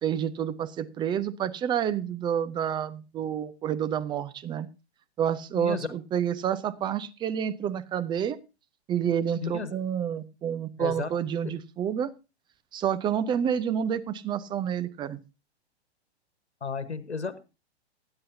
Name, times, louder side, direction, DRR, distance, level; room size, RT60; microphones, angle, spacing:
voice 1, 0.0-4.7 5.2-8.4 8.9-12.1 12.7-15.2, right 9 dB, 15° right, 13 dB, 0.6 m, -29 dB
voice 2, 5.5-5.9 9.4-9.8 10.8-11.1 11.4-11.5 16.6-17.4, left 5 dB, 80° left, 12 dB, 1.4 m, -33 dB
18.5 x 9.8 x 2.8 m, 0.29 s
figure-of-eight pair, 110°, 33 cm